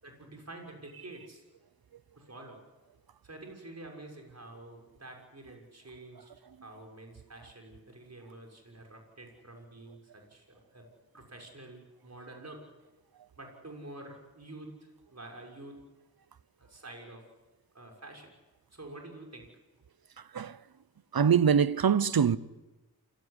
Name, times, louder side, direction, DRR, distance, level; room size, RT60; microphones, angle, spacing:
voice 1, 0.0-1.4 2.2-2.6 3.2-6.3 6.6-10.8 11.1-12.6 13.4-15.8 16.6-17.2 17.7-18.3 18.7-19.5, right 2 dB, 45° right, 6.5 m, -48 dB
voice 2, 21.1-22.4, right 7 dB, 75° right, 0.9 m, -23 dB
28.5 x 17.5 x 10.0 m
wide cardioid pair, 55°, 37 cm